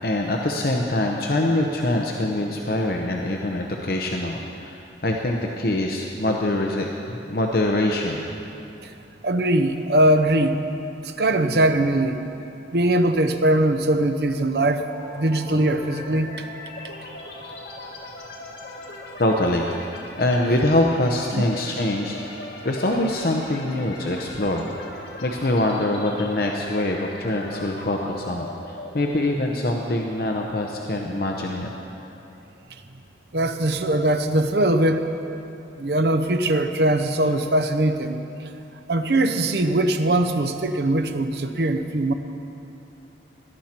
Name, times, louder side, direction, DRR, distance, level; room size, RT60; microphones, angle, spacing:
voice 1, 0.0-4.8 5.0-8.3 19.2-19.7 20.2-22.2 22.6-24.7 25.2-31.7, left 1 dB, 55° left, 1 dB, 0.8 m, -24 dB
voice 2, 9.2-10.6 11.2-12.2 12.7-14.8 15.2-16.3 21.3-21.5 33.3-35.0 35.8-38.2 38.9-42.1, right 1 dB, 65° right, 7 dB, 0.8 m, -21 dB
sound 1, 14.9-32.6, left 1 dB, 80° left, 1.9 m, -40 dB
17.5 x 12.0 x 4.4 m, 2.9 s
head